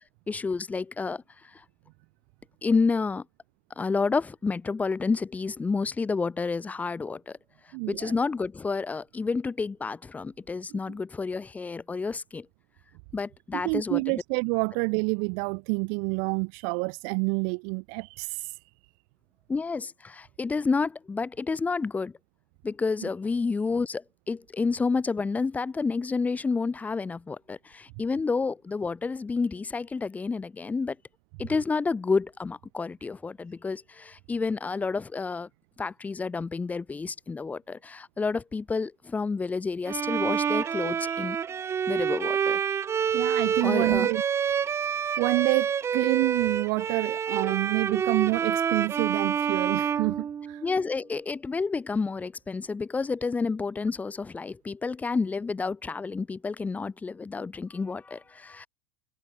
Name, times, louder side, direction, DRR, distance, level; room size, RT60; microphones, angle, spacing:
voice 1, 0.3-1.6 2.6-3.2 3.8-7.4 7.9-12.5 13.1-14.2 19.5-22.1 22.6-31.0 31.4-35.5 35.8-41.4 41.9-42.6 43.6-44.1 50.6-58.7, left 4 dB, 15° left, 3.0 m, -30 dB
voice 2, 7.7-8.1 13.5-18.6 43.1-44.2 44.9-50.6, right 40 dB or more, 55° right, 2.3 m, -28 dB
Bowed string instrument, 39.9-50.9, right 7 dB, 25° right, 3.0 m, -28 dB
supercardioid pair, 140°, 12 cm